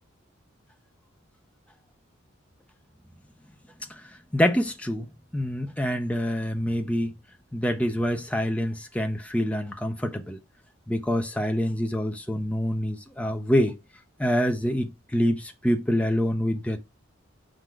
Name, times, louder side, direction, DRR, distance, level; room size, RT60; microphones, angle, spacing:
voice 1, 4.3-5.1 5.3-7.1 7.5-10.4 10.9-13.8 14.2-16.8, equal, 5° left, 0.6 m, -26 dB
5.5 x 3.9 x 4.6 m
head